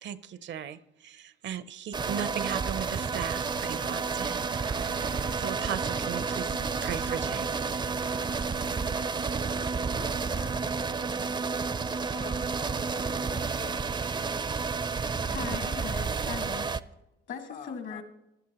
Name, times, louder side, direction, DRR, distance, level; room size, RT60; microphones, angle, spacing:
voice 1, 0.0-4.4 5.1-6.6 6.8-7.5, right 9 dB, 65° right, 15 dB, 0.6 m, -37 dB
sound 1, 1.9-16.8, right 5 dB, 25° right, 0.4 m, -31 dB
sound 2, 2.0-9.0, right 7 dB, 90° right, 1.1 m, -45 dB
voice 2, 10.0-11.6 12.1-12.5 13.0-13.8 17.5-18.0, left 7 dB, 40° left, 8 dB, 0.4 m, -47 dB
voice 3, 15.2-16.7 17.3-18.0, left 6 dB, 70° left, 6 dB, 1.8 m, -38 dB
16.0 x 11.5 x 2.9 m, 0.96 s
cardioid pair, 90°, 20 cm